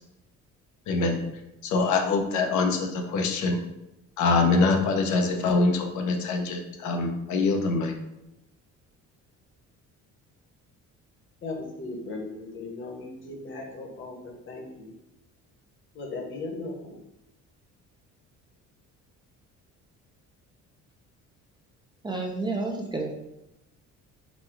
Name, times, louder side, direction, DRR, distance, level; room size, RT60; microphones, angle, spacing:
voice 1, 0.9-1.2 1.6-3.6 4.2-7.9, left 3 dB, 75° left, 3 dB, 0.8 m, -24 dB
voice 2, 11.4-14.9 15.9-17.0, left 3 dB, 40° left, 1 dB, 1.1 m, -37 dB
voice 3, 22.0-23.2, right 3 dB, 15° right, 0 dB, 0.4 m, -30 dB
4.1 x 2.2 x 4.5 m, 0.91 s
cardioid pair, 140°, 30 cm